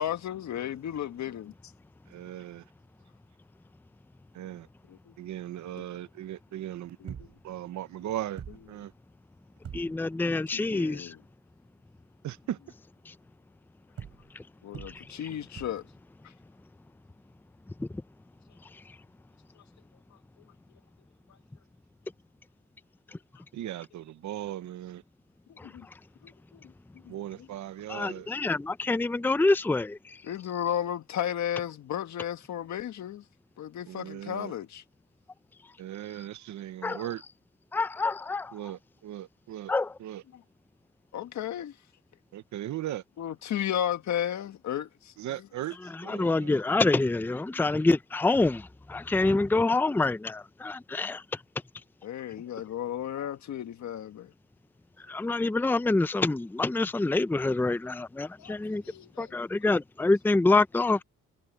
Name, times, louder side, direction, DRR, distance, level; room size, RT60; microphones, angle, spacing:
voice 1, 0.0-1.5 4.9-5.1 5.8-5.9 10.5-11.2 14.6-15.8 25.6-25.9 26.2-26.6 27.0-27.1 30.2-33.2 33.6-34.8 41.1-41.8 43.2-45.1 52.0-54.3 58.4-59.3, left 10 dB, 65° left, 1.8 m, -34 dB
voice 2, 2.1-2.6 4.3-4.7 5.2-7.2 7.4-8.9 12.2-12.6 23.5-25.0 27.1-28.3 33.8-34.5 35.8-37.2 38.5-39.7 40.0-40.2 42.3-43.0 45.2-46.6, right 12 dB, 70° right, 0.9 m, -38 dB
sound 1, 7.1-7.5 8.0-8.1 8.4-8.9 9.6-10.2 14.0-14.4 14.7-15.2 15.5-16.0 18.3-18.4, right 7 dB, 50° right, 4.9 m, -44 dB
voice 3, 9.7-11.2 13.1-13.2 14.3-14.4 14.7-15.0 17.8-17.9 25.6-25.7 27.9-30.2 36.8-37.0 37.7-38.5 39.7-39.9 46.1-51.2 55.1-58.8 59.2-61.0, left 2 dB, 5° left, 0.6 m, -26 dB
cardioid pair, 90°, 30 cm